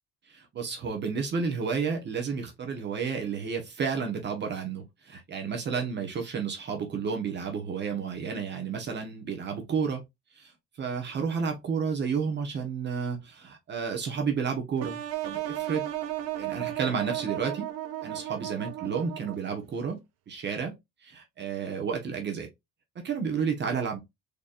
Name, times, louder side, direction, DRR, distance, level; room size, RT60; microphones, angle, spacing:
voice 1, 0.3-10.0 10.3-10.5 10.8-15.9 16.4-17.7 18.0-20.0 20.3-20.7 21.0-22.5 22.9-24.0, right 6 dB, 40° right, 1.1 m, -31 dB
sound 1, 14.8-19.7, right 13 dB, 60° right, 0.8 m, -34 dB
4.1 x 3.3 x 2.4 m
cardioid pair, 120°, 29 cm